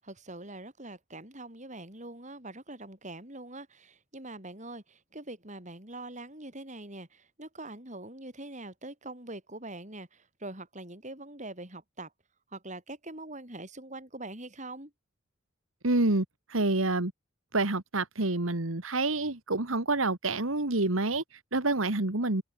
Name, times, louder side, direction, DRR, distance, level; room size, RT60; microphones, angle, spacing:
voice 1, 0.0-12.1 12.5-14.9, right 2 dB, 35° right, 7.8 m, -43 dB
voice 2, 15.8-17.1 17.5-22.4, right 2 dB, 85° right, 2.2 m, -28 dB
head